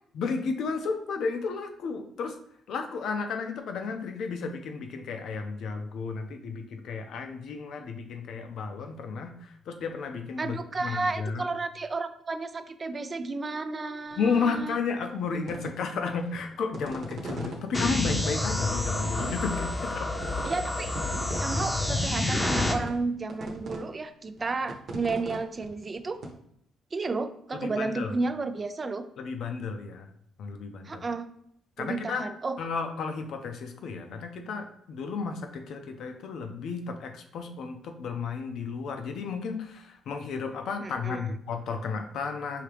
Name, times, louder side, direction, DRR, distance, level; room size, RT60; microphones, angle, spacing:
voice 1, 0.1-2.4 2.7-11.5 14.2-20.1 27.5-28.1 29.2-30.1 30.4-31.0 31.8-32.3 32.6-42.6, left 5 dB, 70° left, 5 dB, 0.6 m, -33 dB
voice 2, 10.4-14.8 20.4-20.9 21.4-26.2 26.9-29.1 30.8-31.3 31.8-32.6 40.8-41.2, right 3 dB, 35° right, 10 dB, 0.4 m, -32 dB
sound 1, 14.1-14.6 15.0-17.6 18.1-18.2 18.6-18.8 19.0-20.0 20.2-20.6 20.8-22.1 22.7-23.0 23.3-23.8 24.2-26.3, right 2 dB, 60° right, 0.9 m, -39 dB
sound 2, 17.7-22.7, left 2 dB, 20° left, 0.7 m, -29 dB
4.8 x 2.8 x 3.3 m, 0.71 s
cardioid pair, 90°, 0 cm